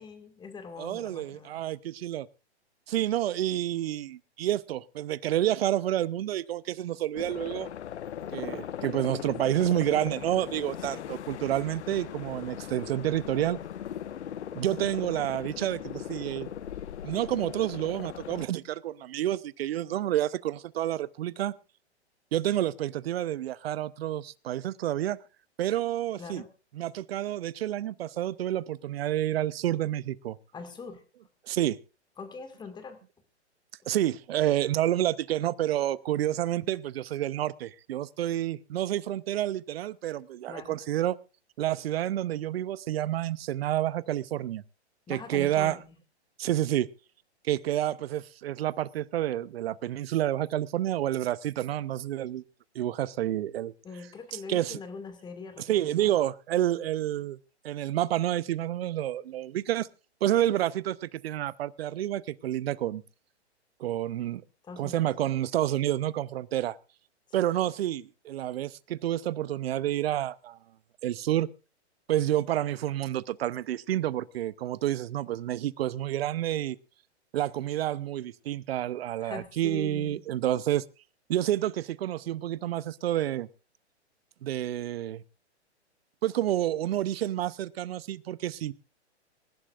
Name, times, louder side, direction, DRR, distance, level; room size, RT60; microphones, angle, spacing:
voice 1, 0.0-1.6 10.9-11.2 26.2-26.5 30.5-31.0 32.2-33.0 40.5-40.8 45.1-45.9 53.8-56.2 64.6-65.1 67.4-67.5 79.2-80.2, left 4 dB, 15° left, 2.0 m, -43 dB
voice 2, 0.8-2.3 2.9-7.7 8.3-13.6 14.5-16.5 17.0-21.5 22.3-25.2 25.6-26.4 26.8-30.4 31.5-31.8 33.9-41.2 41.6-44.6 45.1-45.8 46.4-46.9 47.4-52.4 52.7-53.7 54.5-54.8 55.7-57.4 57.6-59.9 60.2-63.0 63.8-64.4 64.8-66.8 67.3-70.6 71.0-71.5 72.1-76.8 77.3-80.8 81.3-83.5 84.4-85.2 86.2-88.7, right 13 dB, 60° right, 0.7 m, -29 dB
sound 1, 7.1-18.5, left 10 dB, 75° left, 0.9 m, -39 dB
26.0 x 11.5 x 2.5 m
hypercardioid pair, 135°, 34 cm